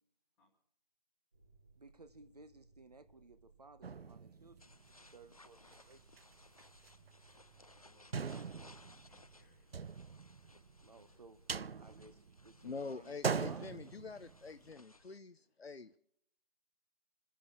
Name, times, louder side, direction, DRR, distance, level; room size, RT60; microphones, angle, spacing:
sound 1, 1.3-15.1, right 3 dB, 20° right, 1.1 m, -67 dB
voice 1, 1.8-4.8 5.1-6.1 10.8-11.4 11.8-12.1 12.4-13.7, right 3 dB, 40° right, 1.3 m, -58 dB
sound 2, 3.8-5.2 5.7-5.8 6.0-6.2 6.6-7.1 7.4-7.5 8.1-10.9 11.2-12.6 13.0-14.7, right 5 dB, 75° right, 0.6 m, -41 dB
sound 3, 4.6-15.2, left 2 dB, 40° left, 0.5 m, -63 dB
voice 2, 7.8-11.2 11.7-12.1 12.4-12.5 15.5-15.6, left 2 dB, 5° left, 1.7 m, -73 dB
voice 3, 12.6-16.0, left 4 dB, 90° left, 0.9 m, -46 dB
28.0 x 10.5 x 4.5 m
figure-of-eight pair, 170°, 30 cm